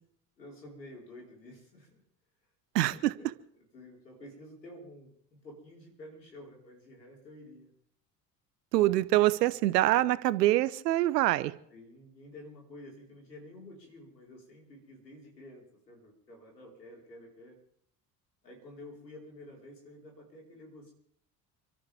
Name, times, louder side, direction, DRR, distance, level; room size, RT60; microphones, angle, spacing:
voice 1, 0.4-2.0 2.9-3.3 3.6-7.7 9.2-9.7 9.9-10.0 11.7-17.6 18.4-20.9, left 1 dB, 85° left, -1 dB, 4.8 m, -50 dB
voice 2, 2.7-3.1 8.7-11.5, right 16 dB, 75° right, 16 dB, 1.0 m, -25 dB
29.5 x 12.5 x 3.6 m, 0.65 s
figure-of-eight pair, 60°, 49 cm